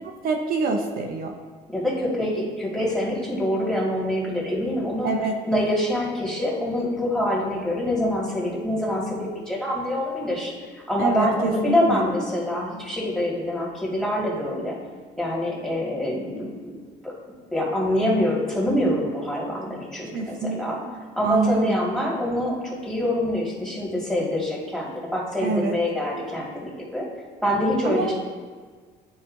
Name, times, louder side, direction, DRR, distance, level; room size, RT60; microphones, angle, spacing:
voice 1, 0.0-1.3 5.0-5.3 11.0-12.0 20.1-20.9 21.2-21.8 25.4-25.7 27.8-28.1, right 4 dB, 60° right, 2 dB, 0.8 m, -26 dB
voice 2, 1.7-5.1 5.5-14.8 15.2-16.7 17.0-17.1 17.5-20.8 21.2-22.6 22.8-27.1 27.4-28.1, left 1 dB, 5° left, -5 dB, 2.0 m, -25 dB
11.0 x 4.2 x 2.6 m, 1.5 s
cardioid pair, 110°, 17 cm